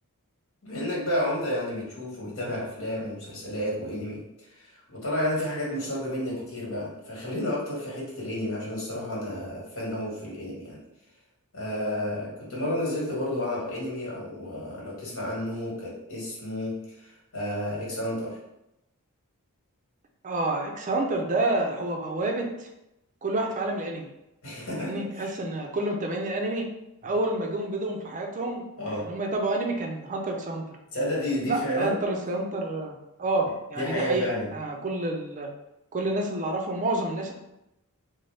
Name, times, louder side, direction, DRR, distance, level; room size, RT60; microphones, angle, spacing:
voice 1, 0.6-10.8 11.5-18.4 24.4-25.3 28.8-29.1 30.9-32.0 33.7-34.6, left 1 dB, 65° left, -5 dB, 1.4 m, -31 dB
voice 2, 20.2-22.7 23.2-24.1 24.8-26.7 27.0-30.8 31.5-35.5 35.9-37.3, right 2 dB, 35° right, 2 dB, 0.5 m, -29 dB
3.9 x 2.0 x 3.3 m, 0.88 s
head